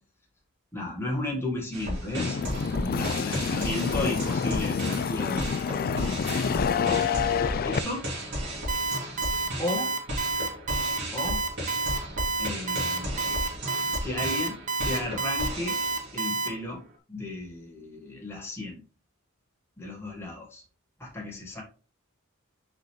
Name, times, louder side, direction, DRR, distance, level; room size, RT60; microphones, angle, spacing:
voice 1, 0.7-2.4 2.7-6.1 7.1-8.1 9.6-9.9 11.1-11.4 12.4-13.4 14.0-14.6 14.8-15.8 16.1-16.8 17.1-18.8 19.8-20.6 21.0-21.6, left 2 dB, 10° left, -2 dB, 1.7 m, -34 dB
sound 1, 1.7-16.5, equal, 55° right, 2.6 m, -35 dB
sound 2, 2.2-7.8, left 6 dB, 45° left, 0.4 m, -27 dB
Alarm, 8.7-16.5, right 3 dB, 35° right, 0.9 m, -29 dB
6.1 x 5.1 x 3.2 m, 0.35 s
head